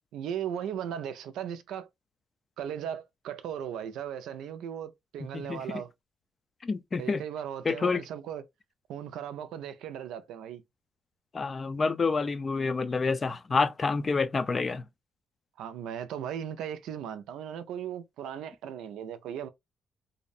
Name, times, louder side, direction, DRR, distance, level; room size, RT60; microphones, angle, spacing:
voice 1, 0.1-1.9 2.6-5.9 7.0-8.4 8.9-10.6 15.6-19.5, right 9 dB, 85° right, 0.4 m, -37 dB
voice 2, 6.6-7.2 7.7-8.0 11.3-14.8, left 4 dB, 35° left, 0.4 m, -28 dB
2.6 x 2.0 x 2.5 m
cardioid pair, 90°, 0 cm